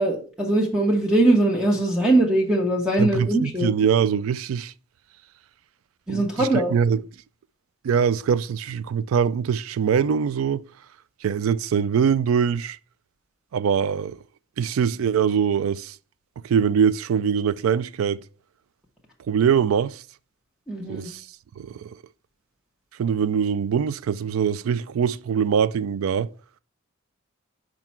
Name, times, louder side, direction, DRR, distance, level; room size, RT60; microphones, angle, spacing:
voice 1, 0.0-3.7 6.1-6.7 20.7-21.1, right 1 dB, 5° right, 1.1 m, -21 dB
voice 2, 3.0-4.7 6.1-7.0 7.8-10.6 11.2-12.8 13.5-14.2 14.6-16.0 16.4-18.2 19.3-20.0 20.9-21.3 21.6-22.0 23.0-26.3, right 7 dB, 75° right, 0.3 m, -23 dB
5.9 x 4.8 x 4.3 m
head